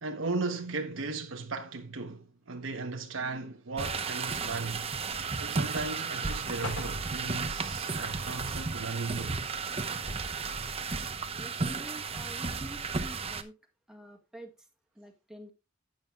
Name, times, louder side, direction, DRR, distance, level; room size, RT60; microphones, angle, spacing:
voice 1, 0.0-4.9 5.4-9.4, right 3 dB, 85° right, 1.1 m, -36 dB
sound 1, 3.8-13.4, right 4 dB, 30° right, 0.7 m, -34 dB
sound 2, 5.0-5.6 6.0-6.1 6.6-7.6 9.7-10.5 11.3-11.4, left 1 dB, 80° left, 5.3 m, -42 dB
voice 2, 11.4-13.5 13.9-14.6 15.0-15.5, right 1 dB, 5° right, 1.8 m, -48 dB
12.0 x 9.0 x 2.4 m
head